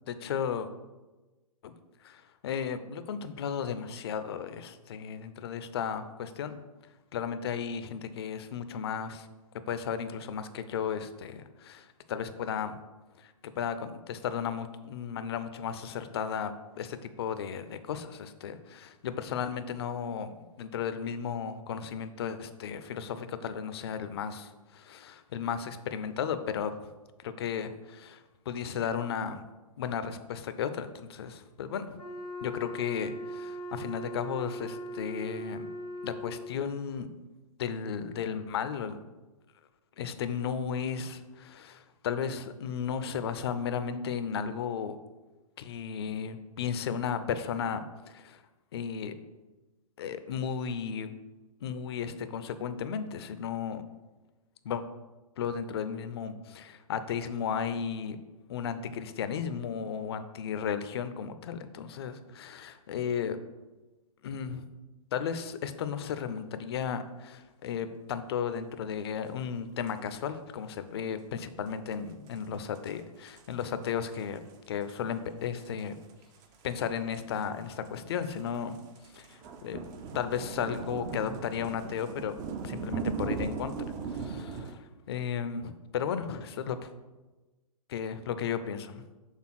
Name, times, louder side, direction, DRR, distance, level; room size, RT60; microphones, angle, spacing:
voice 1, 0.1-0.7 1.6-1.7 2.0-6.6 7.1-9.3 9.7-12.8 13.2-26.7 27.2-29.4 29.8-32.0 32.4-35.7 36.0-37.1 37.6-39.0 40.0-45.0 45.6-47.8 48.1-48.4 48.7-49.1 50.0-51.1 51.6-53.8 54.6-54.8 55.4-58.2 58.5-63.4 64.2-64.6 65.1-76.0 76.6-78.8 79.1-79.8 80.1-82.4 82.6-83.7 84.1-86.9 87.9-89.0, left 7 dB, 45° left, 11 dB, 0.5 m, -34 dB
Wind instrument woodwind instrument, 32.0-36.6, equal, 90° left, 1.1 m, -40 dB
sound 1, 69.9-70.0 71.7-71.8 71.9-72.0 72.3-72.4 72.8-73.0 73.3-73.9 74.2-74.5 74.8-75.0 75.6-84.8, right 5 dB, 20° right, 0.5 m, -38 dB
6.4 x 3.5 x 5.7 m, 1.2 s
figure-of-eight pair, 125°, 19 cm